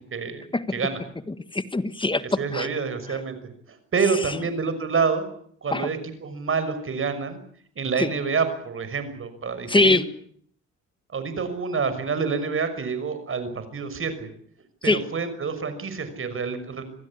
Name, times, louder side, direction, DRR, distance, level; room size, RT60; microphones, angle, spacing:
voice 1, 0.1-0.4 0.7-1.0 2.4-3.4 3.7-5.2 5.6-7.4 7.8-10.0 11.1-14.3 14.8-16.8, right 5 dB, 45° right, 10 dB, 6.1 m, -27 dB
voice 2, 1.3-2.7 3.1-3.2 4.1-4.4 5.7-5.9 8.0-8.1 9.7-10.0 14.8-15.0, left 2 dB, 15° left, 13 dB, 1.6 m, -23 dB
26.5 x 16.0 x 9.8 m, 0.64 s
cardioid pair, 90°, 30 cm